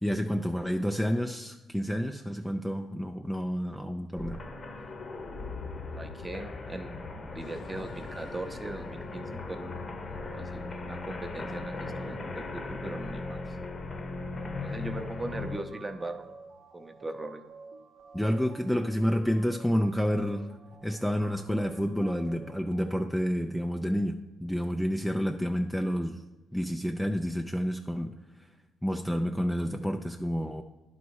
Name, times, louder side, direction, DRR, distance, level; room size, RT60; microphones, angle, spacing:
voice 1, 0.0-4.4 18.1-26.2 26.5-28.5 28.8-30.6, equal, 5° left, 4 dB, 0.4 m, -29 dB
sound 1, 4.2-15.6, left 3 dB, 40° left, 1.0 m, -38 dB
voice 2, 5.9-7.0 7.3-9.8 10.0-13.4 14.6-16.2 16.7-17.4, right 2 dB, 15° right, 7 dB, 0.8 m, -39 dB
sound 2, 7.4-12.2, left 2 dB, 60° left, 1.2 m, -51 dB
sound 3, 15.0-23.0, right 4 dB, 65° right, 0.7 m, -51 dB
10.5 x 4.1 x 4.7 m, 1.2 s
cardioid pair, 90°, 0 cm